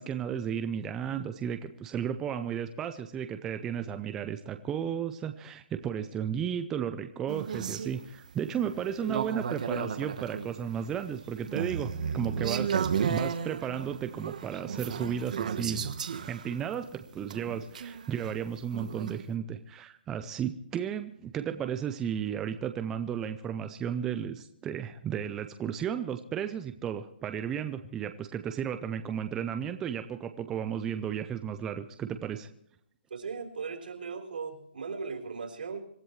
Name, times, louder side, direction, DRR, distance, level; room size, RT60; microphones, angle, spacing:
voice 1, 0.0-15.8 16.3-32.5, right 8 dB, 10° right, 8 dB, 0.5 m, -34 dB
sound 1, 7.3-19.2, right 7 dB, 45° right, 1.2 m, -34 dB
voice 2, 33.1-35.9, right 5 dB, 65° right, 4 dB, 4.1 m, -38 dB
26.0 x 13.5 x 3.2 m, 0.71 s
hypercardioid pair, 175°, 6 cm